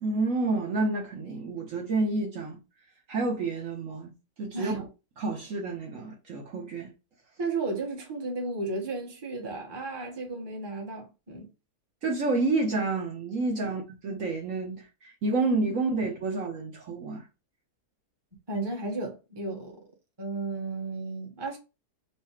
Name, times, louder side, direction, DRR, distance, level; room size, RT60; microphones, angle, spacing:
voice 1, 0.0-2.6 3.1-4.1 4.4-4.8 5.2-6.9 12.0-17.2, right 3 dB, 55° right, 1.1 m, -29 dB
voice 2, 7.4-11.5 13.6-13.8 18.5-19.8 20.2-21.6, right 3 dB, 20° right, 1.0 m, -34 dB
4.8 x 2.1 x 4.4 m
omnidirectional pair, 1.7 m